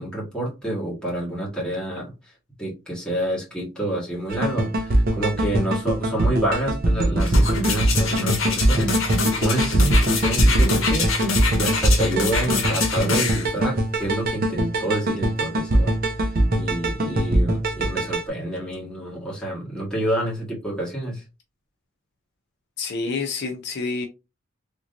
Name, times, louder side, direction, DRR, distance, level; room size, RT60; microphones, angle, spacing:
voice 1, 0.0-2.3 2.6-15.9 16.2-16.3 16.5-21.2, right 1 dB, 5° left, 1.5 m, -28 dB
sound 1, 4.3-18.3, right 1 dB, 45° right, 0.7 m, -22 dB
sound 2, 7.2-13.5 14.0-14.1, left 4 dB, 75° left, 1.1 m, -26 dB
voice 2, 22.8-24.1, left 4 dB, 55° left, 0.5 m, -28 dB
3.5 x 3.0 x 2.5 m
head